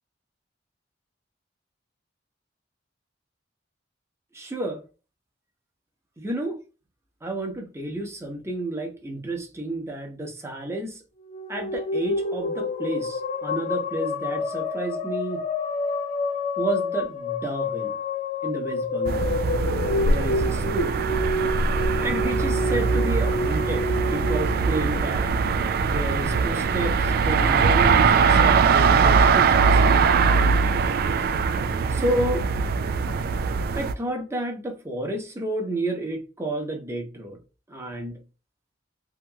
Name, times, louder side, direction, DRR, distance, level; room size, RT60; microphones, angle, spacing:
voice 1, 4.3-4.8 6.2-6.6 7.2-11.0 11.5-15.4 16.6-17.9 18.4-21.0 22.0-25.4 25.8-29.8 31.9-32.5 33.7-37.4 37.7-38.2, right 1 dB, 15° right, 0.8 m, -31 dB
sound 1, 11.2-25.7, left 2 dB, 45° left, 0.4 m, -29 dB
sound 2, 19.1-33.9, right 5 dB, 55° right, 0.3 m, -21 dB
2.8 x 2.8 x 2.3 m
head